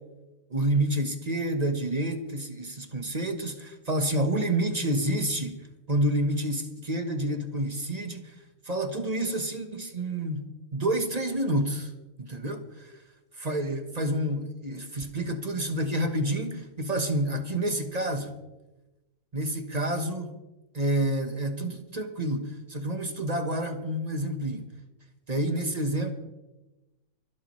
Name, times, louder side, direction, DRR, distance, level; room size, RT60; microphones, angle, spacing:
voice 1, 0.5-8.3 8.6-11.9 12.2-13.0 13.4-18.3 19.3-20.3 20.7-24.7 25.3-26.1, right 1 dB, 25° right, 6 dB, 1.0 m, -29 dB
25.0 x 12.0 x 3.1 m, 1.1 s
omnidirectional pair, 1.9 m